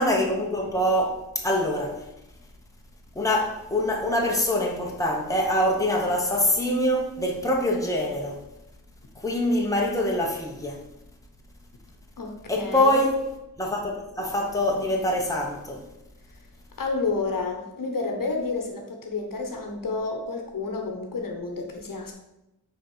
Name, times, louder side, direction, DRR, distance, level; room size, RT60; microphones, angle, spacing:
voice 1, 0.0-2.0 3.1-8.4 9.2-10.8 12.5-13.2 13.6-15.8, left 1 dB, 10° left, 1.1 m, -24 dB
voice 2, 12.2-13.0 16.8-22.1, left 3 dB, 60° left, 1.1 m, -30 dB
6.0 x 4.1 x 6.1 m
wide cardioid pair, 145°, 37 cm